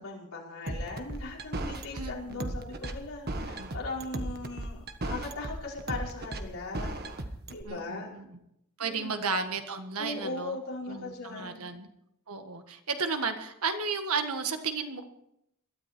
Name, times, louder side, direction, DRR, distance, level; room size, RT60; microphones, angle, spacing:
voice 1, 0.0-6.9 7.5-8.1 8.8-9.2 10.0-11.7, left 2 dB, 65° left, -4 dB, 5.0 m, -39 dB
sound 1, 0.7-7.6, right 1 dB, 45° right, 1.4 m, -35 dB
voice 2, 1.9-2.5 3.4-3.7 7.6-8.4 8.8-10.6 10.9-11.9 12.3-15.1, right 4 dB, 75° right, 6 dB, 1.7 m, -34 dB
21.0 x 13.0 x 4.5 m, 0.80 s
head